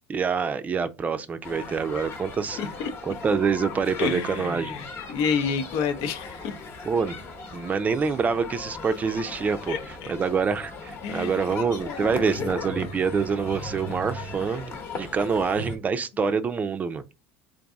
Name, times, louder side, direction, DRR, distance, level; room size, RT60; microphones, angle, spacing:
voice 1, 0.1-2.6 3.0-4.8 6.8-7.2 7.5-17.0, right 5 dB, 25° right, 0.5 m, -26 dB
sound 1, 1.4-15.8, left 3 dB, 40° left, 1.0 m, -38 dB
voice 2, 2.6-2.9 4.0-6.6 9.7-10.2 11.0-11.4 11.8-12.5, left 6 dB, 70° left, 0.7 m, -30 dB
3.9 x 2.6 x 3.5 m
supercardioid pair, 105°, 6 cm